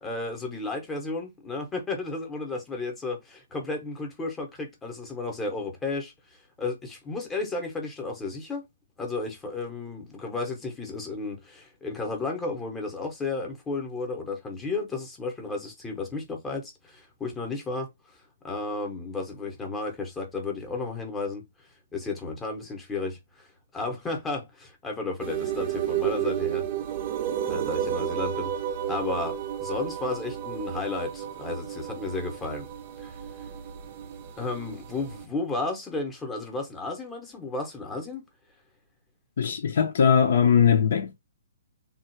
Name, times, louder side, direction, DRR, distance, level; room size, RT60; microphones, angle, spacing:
voice 1, 0.0-8.6 9.0-17.9 18.4-21.5 21.9-23.5 23.7-26.7 27.5-28.5 28.9-32.7 33.0-33.2 34.4-38.2, left 3 dB, 10° left, 0.9 m, -33 dB
sound 1, 25.2-35.2, right 10 dB, 30° right, 0.5 m, -32 dB
voice 2, 39.4-41.2, left 7 dB, 55° left, 0.7 m, -20 dB
3.5 x 2.4 x 4.4 m
hypercardioid pair, 170°, 0 cm